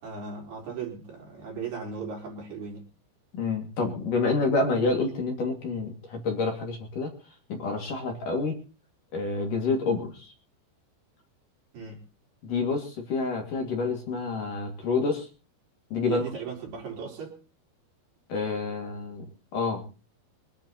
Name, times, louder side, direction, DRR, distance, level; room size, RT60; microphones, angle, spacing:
voice 1, 0.0-2.9 11.7-12.0 16.0-17.4, right 6 dB, 60° right, 0 dB, 5.9 m, -37 dB
voice 2, 3.3-7.1 7.5-8.6 9.1-10.3 12.4-15.3 15.9-16.2 18.3-19.3 19.5-19.8, left 3 dB, 50° left, 2 dB, 3.9 m, -28 dB
24.0 x 10.0 x 4.2 m, 0.34 s
omnidirectional pair, 5.3 m